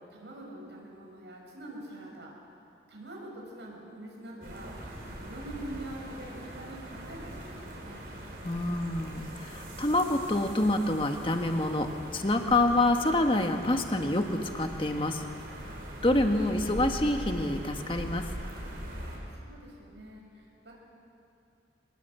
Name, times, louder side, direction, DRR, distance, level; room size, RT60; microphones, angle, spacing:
voice 1, 0.1-2.4 2.9-4.8 5.2-8.0 19.3-20.7, right 1 dB, 80° right, -1 dB, 6.0 m, -44 dB
sound 1, 4.4-19.2, equal, 55° right, 5.5 m, -41 dB
voice 2, 8.4-15.2 16.0-18.3, left 1 dB, 30° left, 4 dB, 1.6 m, -27 dB
25.0 x 20.5 x 8.3 m, 2.7 s
head